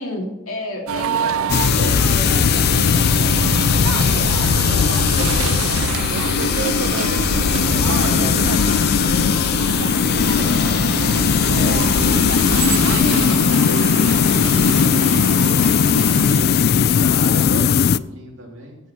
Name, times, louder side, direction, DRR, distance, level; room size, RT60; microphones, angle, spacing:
voice 1, 0.0-4.3 4.6-5.6 7.5-10.6, left 1 dB, 80° left, 1 dB, 2.8 m, -34 dB
sound 1, 0.9-16.4, right 8 dB, 80° right, 0.4 m, -26 dB
sound 2, 1.5-18.0, left 7 dB, 50° left, 0.3 m, -18 dB
voice 2, 4.5-5.4 5.9-8.3 10.2-18.8, right 1 dB, 60° right, -1 dB, 3.1 m, -34 dB
16.0 x 6.3 x 4.5 m, 0.99 s
head